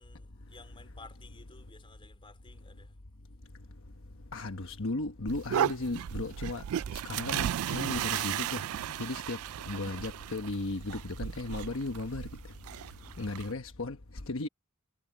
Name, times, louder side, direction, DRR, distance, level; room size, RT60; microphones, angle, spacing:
voice 1, 0.0-3.0, left 3 dB, 25° left, 3.8 m, -55 dB
voice 2, 4.3-6.6 7.1-8.6 9.0-9.4 9.7-12.3 13.2-14.0 14.3-14.5, left 2 dB, 65° left, 1.2 m, -35 dB
sound 1, 5.3-13.5, right 10 dB, 75° right, 0.3 m, -35 dB
head